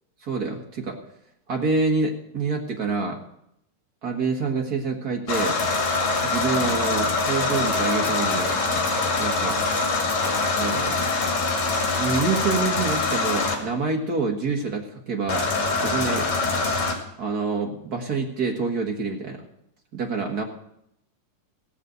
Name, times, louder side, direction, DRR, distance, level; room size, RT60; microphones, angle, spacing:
voice 1, 0.2-1.0 1.5-3.2 4.0-5.6 6.2-8.6 9.2-9.6 10.5-11.0 11.9-15.5 15.7-16.3 17.2-19.4 19.9-20.4, right 4 dB, 60° right, 1 dB, 1.0 m, -27 dB
sound 1, 5.3-13.5 15.3-16.9, left 3 dB, 55° left, 3.3 m, -24 dB
17.0 x 6.6 x 8.0 m, 0.77 s
omnidirectional pair, 4.0 m